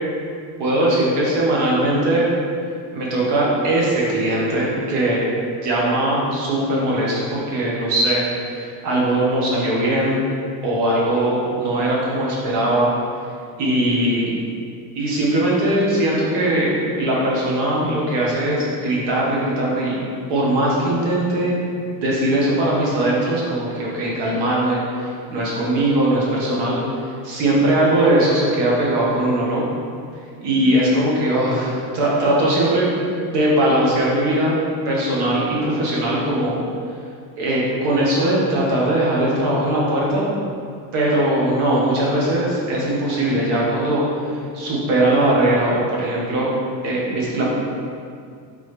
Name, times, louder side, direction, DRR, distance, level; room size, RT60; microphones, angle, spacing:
voice 1, 0.6-2.3 2.9-5.3 5.6-10.2 10.6-12.9 13.6-14.3 14.9-20.0 20.3-21.6 21.9-29.6 30.4-32.9 33.3-36.6 37.4-40.3 40.9-46.5 46.8-47.4, right 1 dB, 60° right, -4 dB, 1.3 m, -20 dB
3.6 x 3.3 x 3.2 m, 2.3 s
supercardioid pair, 130°, 48 cm